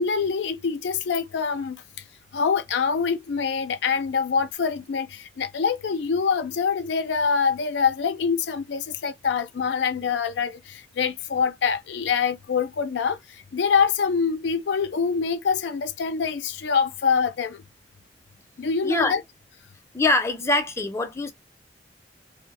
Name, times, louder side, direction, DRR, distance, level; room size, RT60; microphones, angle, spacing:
voice 1, 0.0-1.8 2.3-13.2 13.5-17.6 18.6-19.2, left 6 dB, 85° left, 0.4 m, -25 dB
voice 2, 19.9-21.3, left 2 dB, 15° left, 0.5 m, -23 dB
2.6 x 2.0 x 3.1 m
head